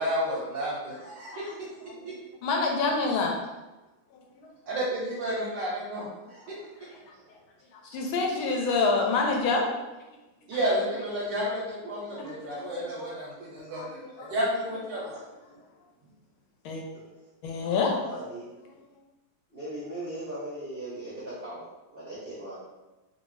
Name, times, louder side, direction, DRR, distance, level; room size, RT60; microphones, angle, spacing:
voice 1, 0.0-1.6 2.0-2.1 4.7-6.7 10.5-15.2, equal, 70° right, -4 dB, 1.2 m, -31 dB
voice 2, 2.4-3.3 7.8-9.7 12.1-12.2 12.5-12.9 13.7-13.9 14.2-14.3 16.6-16.8 17.4-17.9, left 4 dB, 75° left, 0 dB, 1.3 m, -26 dB
voice 3, 17.7-18.5 19.5-21.6 21.9-22.6, right 1 dB, 50° right, -11 dB, 0.6 m, -38 dB
3.2 x 2.6 x 3.1 m, 1.1 s
omnidirectional pair, 2.4 m